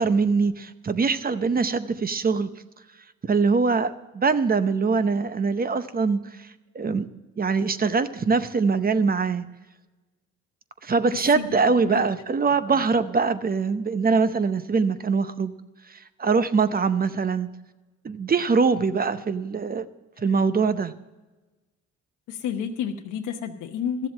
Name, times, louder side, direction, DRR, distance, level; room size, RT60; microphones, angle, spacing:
voice 1, 0.0-2.5 3.2-6.5 6.7-9.5 10.8-15.5 15.9-17.5 18.0-19.9 20.2-20.9, right 4 dB, 30° right, 12 dB, 0.8 m, -23 dB
voice 2, 11.1-11.5 11.8-12.0 12.7-12.8 20.3-20.4 22.3-24.1, left 8 dB, 90° left, 4 dB, 0.9 m, -31 dB
13.5 x 7.6 x 7.4 m, 1.1 s
cardioid pair, 90°, 30 cm